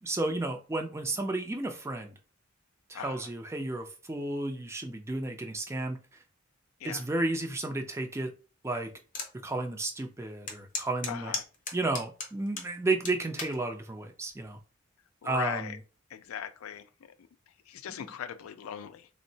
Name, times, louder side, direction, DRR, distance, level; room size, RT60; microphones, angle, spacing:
voice 1, 0.0-2.2 2.9-6.0 6.8-8.3 8.6-8.9 9.4-11.3 11.7-14.6 15.2-15.7, right 2 dB, 15° right, 0.4 m, -32 dB
voice 2, 2.9-3.3 6.8-7.0 11.1-11.4 15.2-15.8 16.1-16.9 17.7-19.1, left 8 dB, 85° left, 0.4 m, -39 dB
sound 1, 9.1-9.3 9.8-9.9 10.5-12.7 13.1-13.6 14.3-14.6, left 4 dB, 40° left, 0.6 m, -36 dB
3.6 x 2.0 x 2.7 m
head